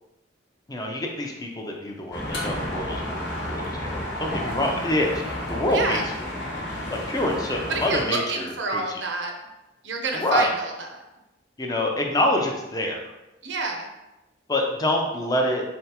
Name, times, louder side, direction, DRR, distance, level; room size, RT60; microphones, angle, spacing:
voice 1, 0.7-3.9 4.2-6.0 6.9-8.8 10.1-10.5 11.6-13.0 14.5-15.6, left 1 dB, 20° left, 1 dB, 0.4 m, -26 dB
sound 1, 2.1-8.0, left 1 dB, 65° left, 0.9 m, -31 dB
voice 2, 5.7-6.1 7.7-9.3 9.8-11.0 13.4-13.9, right 3 dB, 70° right, 2 dB, 0.6 m, -28 dB
3.9 x 3.4 x 2.9 m, 0.98 s
head